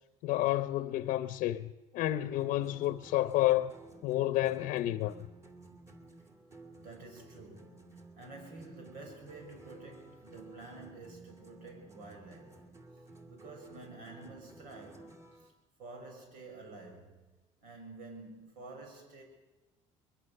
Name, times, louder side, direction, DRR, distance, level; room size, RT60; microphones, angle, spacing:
voice 1, 0.2-3.7 4.0-5.1, left 15 dB, 75° left, 0.8 m, -30 dB
sound 1, 2.4-15.5, right 2 dB, 20° right, 2.5 m, -54 dB
voice 2, 6.8-12.8 13.3-15.5 15.8-19.2, right 3 dB, 80° right, 6.9 m, -50 dB
22.5 x 22.0 x 6.7 m
cardioid pair, 120°, 14 cm